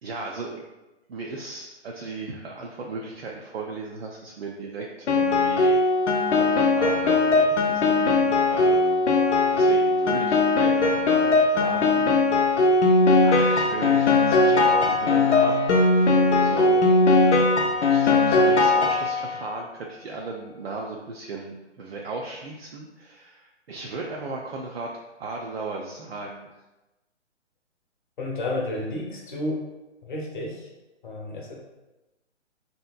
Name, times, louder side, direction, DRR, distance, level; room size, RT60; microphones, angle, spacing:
voice 1, 0.0-0.6 1.1-5.8 6.3-12.2 13.2-16.0 16.3-16.8 17.9-24.9 25.2-26.5, right 3 dB, 55° right, -1 dB, 0.5 m, -36 dB
Piano, 5.1-19.5, left 3 dB, 70° left, 0.5 m, -20 dB
voice 2, 28.2-29.6 30.1-30.5 31.0-31.5, left 1 dB, 45° left, -2 dB, 0.8 m, -31 dB
3.3 x 2.8 x 2.2 m, 1.0 s
figure-of-eight pair, 140°, 36 cm